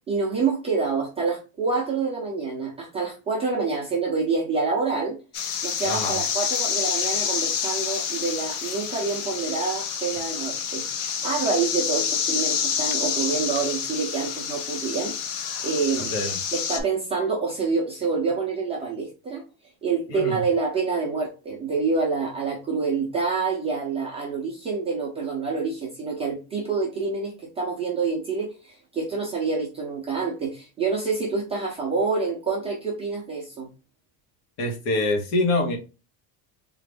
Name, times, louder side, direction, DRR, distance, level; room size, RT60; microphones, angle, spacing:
voice 1, 0.1-5.2 5.6-15.1 15.6-16.1 16.5-19.4 19.8-33.7, right 4 dB, 15° right, 0.4 m, -27 dB
sound 1, 5.3-16.8, left 7 dB, 50° left, 0.6 m, -28 dB
voice 2, 5.8-6.2 16.0-16.4 20.1-20.4 34.6-35.8, left 2 dB, 70° left, 1.3 m, -25 dB
3.9 x 2.5 x 3.3 m
cardioid pair, 180°, 47 cm